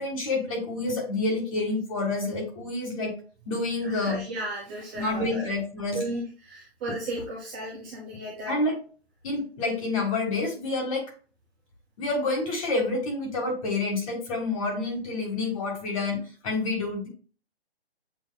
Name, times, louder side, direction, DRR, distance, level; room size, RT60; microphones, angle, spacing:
voice 1, 0.0-3.1 3.5-4.2 5.0-6.0 8.5-8.8 9.2-11.1 12.0-17.1, left 2 dB, 30° left, 2 dB, 1.7 m, -28 dB
voice 2, 3.8-5.5 5.9-8.5, right 1 dB, 10° right, -6 dB, 0.7 m, -35 dB
8.2 x 2.8 x 2.3 m, 0.38 s
hypercardioid pair, 155°, 32 cm